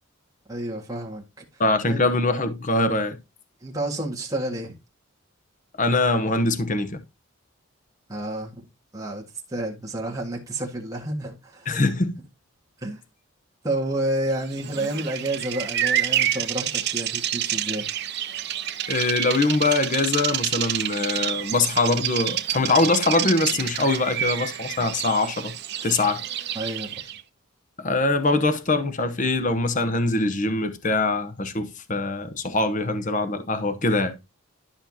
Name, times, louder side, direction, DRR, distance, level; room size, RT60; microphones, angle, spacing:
voice 1, 0.5-1.2 1.8-2.0 3.6-4.8 8.1-8.6 8.9-9.2 9.5-11.7 12.8-13.0 13.6-17.9 26.5-27.0, right 1 dB, 15° right, 1.7 m, -30 dB
voice 2, 1.6-3.2 5.8-7.0 11.7-12.2 18.9-25.5 25.8-26.2 27.8-34.1, left 2 dB, 35° left, 0.9 m, -23 dB
Bird vocalization bird call bird song, 14.5-27.2, right 11 dB, 50° right, 0.7 m, -28 dB
11.5 x 5.7 x 2.8 m
head